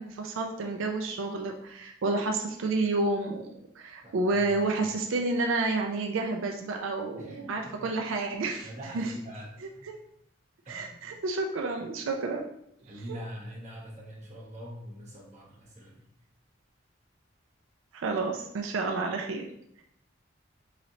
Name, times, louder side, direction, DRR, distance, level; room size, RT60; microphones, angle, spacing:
voice 1, 0.0-8.7 8.9-9.1 10.7-12.5 13.1-13.2 17.9-19.5, right 3 dB, 90° right, 2 dB, 0.4 m, -30 dB
voice 2, 4.0-4.9 7.2-7.9 8.6-9.5 9.7-9.8 10.6-11.1 12.8-16.1, equal, 35° right, -3 dB, 0.9 m, -44 dB
3.9 x 3.1 x 2.7 m, 0.73 s
head